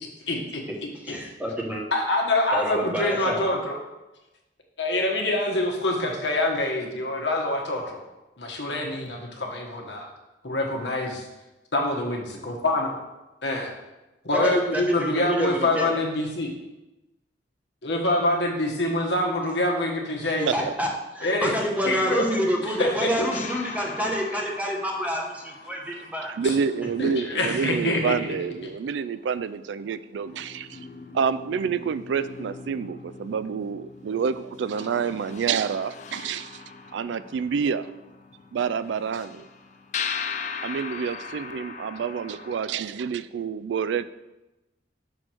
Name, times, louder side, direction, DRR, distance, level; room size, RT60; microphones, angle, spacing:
voice 1, 0.3-0.6 1.1-1.2 1.9-3.7 4.8-8.0 8.4-10.1 10.4-11.3 11.7-13.0 13.4-13.8 14.2-16.5 17.8-20.7 21.2-21.5 21.9-22.2 22.8-23.5 26.4-26.5 27.0-28.3, left 2 dB, 75° left, 0 dB, 1.3 m, -25 dB
voice 2, 1.0-1.8 2.5-3.4 14.3-15.9 20.4-20.9 21.1-26.3, equal, 10° right, -1 dB, 1.1 m, -28 dB
sound 1, 23.3-28.2 29.7-29.8 30.2-42.6, left 6 dB, 40° left, 0.4 m, -39 dB
voice 3, 26.2-30.8 31.1-36.6 36.9-37.9 38.5-39.5 40.6-44.1, right 6 dB, 80° right, 14 dB, 0.3 m, -28 dB
6.3 x 4.4 x 6.2 m, 1.0 s
head